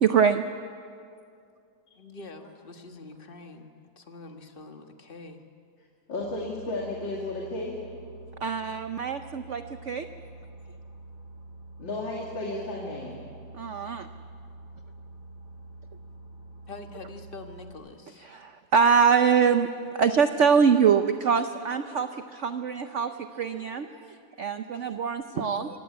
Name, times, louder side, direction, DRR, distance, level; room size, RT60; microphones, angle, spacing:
voice 1, 0.0-0.4 8.4-10.1 13.5-14.1 18.3-19.7 19.9-25.7, right 6 dB, 65° right, 9 dB, 0.7 m, -24 dB
voice 2, 1.9-3.7 3.9-5.4 16.7-18.3 25.3-25.7, left 3 dB, 30° left, 5 dB, 1.6 m, -44 dB
voice 3, 6.1-7.8 11.8-13.3, left 2 dB, 75° left, -3 dB, 3.3 m, -33 dB
Boat Water vehicle, 6.2-17.7, right 2 dB, 80° right, 4.0 m, -46 dB
25.5 x 17.5 x 8.2 m, 2.4 s
omnidirectional pair, 2.1 m